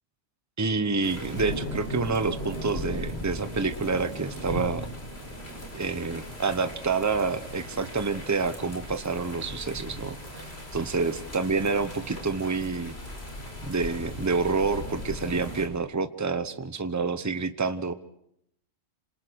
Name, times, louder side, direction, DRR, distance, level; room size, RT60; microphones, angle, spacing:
voice 1, 0.6-4.9 5.7-12.9 13.6-17.9, right 4 dB, 15° right, 10 dB, 1.0 m, -28 dB
sound 1, 1.0-15.7, equal, 55° left, 5.3 m, -38 dB
28.0 x 26.5 x 4.7 m, 0.74 s
omnidirectional pair, 1.3 m